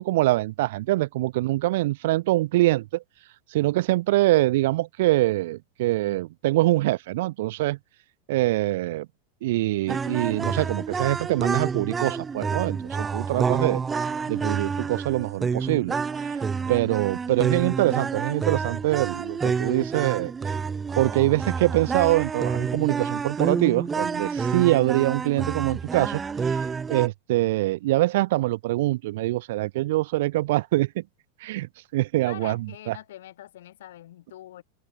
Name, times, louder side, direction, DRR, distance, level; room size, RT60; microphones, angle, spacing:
voice 1, 0.0-3.0 3.5-7.8 8.3-9.1 9.4-13.8 14.3-16.0 16.7-20.3 21.0-26.2 26.5-26.6 26.9-31.0 31.4-32.6, right 17 dB, 55° right, 0.9 m, -24 dB
sound 1, 9.9-27.1, right 5 dB, 10° right, 0.4 m, -28 dB
voice 2, 32.3-34.6, left 13 dB, 70° left, 4.5 m, -43 dB
supercardioid pair, 170°, 0 cm